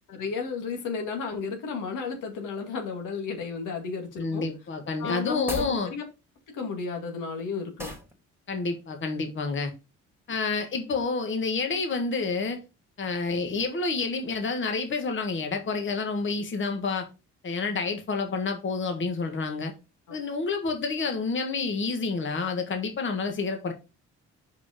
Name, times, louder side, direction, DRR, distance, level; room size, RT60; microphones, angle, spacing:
voice 1, 0.1-4.4 5.0-6.0 6.5-8.0, left 5 dB, 85° left, 2.1 m, -33 dB
voice 2, 4.2-5.9 8.5-9.7 10.3-12.6 13.0-17.1 17.4-19.7 20.1-23.7, left 4 dB, 40° left, 1.4 m, -29 dB
sound 1, 5.3-5.8 7.8-8.1, right 1 dB, 5° right, 2.1 m, -35 dB
5.3 x 5.1 x 5.0 m
cardioid pair, 90°, 30 cm